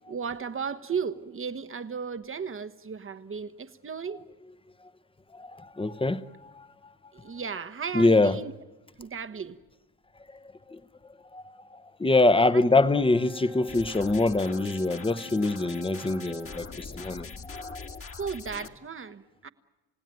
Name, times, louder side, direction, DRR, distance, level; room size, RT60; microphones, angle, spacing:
voice 1, 0.1-4.2 7.1-8.5 9.0-9.6 12.5-12.6 18.2-19.5, right 6 dB, 35° right, 1.3 m, -35 dB
voice 2, 5.3-6.9 7.9-8.4 10.3-10.4 10.7-10.8 11.3-18.0, left 2 dB, 15° left, 1.1 m, -25 dB
Wind instrument woodwind instrument, 12.7-16.7, right 1 dB, 10° right, 1.1 m, -47 dB
sound 1, 13.7-18.7, left 4 dB, 35° left, 2.0 m, -42 dB
30.0 x 16.5 x 9.2 m
supercardioid pair, 70°, 37 cm